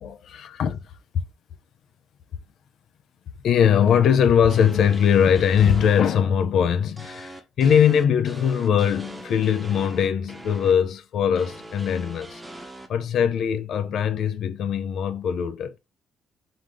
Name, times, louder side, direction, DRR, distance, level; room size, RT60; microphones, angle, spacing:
voice 1, 0.0-0.9 3.4-12.4 12.9-15.7, left 8 dB, 70° left, 0.6 m, -21 dB
sound 1, 4.5-6.0 7.0-10.7 11.4-12.9, right 1 dB, 10° right, 0.8 m, -41 dB
3.9 x 3.8 x 3.1 m
cardioid pair, 115°, 0 cm